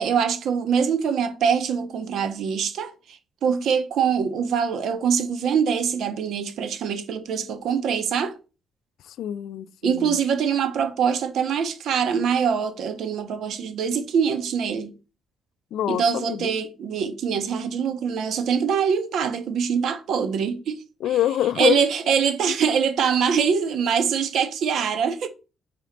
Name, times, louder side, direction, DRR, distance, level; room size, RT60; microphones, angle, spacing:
voice 1, 0.0-8.3 9.8-14.9 15.9-20.8 21.6-25.3, right 7 dB, 70° right, 1.1 m, -24 dB
voice 2, 9.0-10.2 15.7-16.5 21.0-21.8, left 12 dB, 80° left, 0.4 m, -25 dB
5.0 x 4.4 x 5.1 m
cardioid pair, 90°, 0 cm